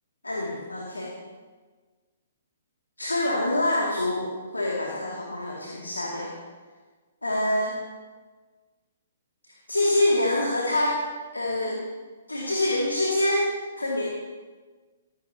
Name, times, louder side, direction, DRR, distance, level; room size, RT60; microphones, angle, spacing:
voice 1, 0.2-1.1 3.0-6.3 7.2-7.8 9.7-11.0 11.3-11.8 12.3-13.5 13.8-14.0, left 1 dB, 85° left, -2 dB, 2.7 m, -25 dB
21.0 x 15.0 x 3.0 m, 1.4 s
figure-of-eight pair, 125°, 0 cm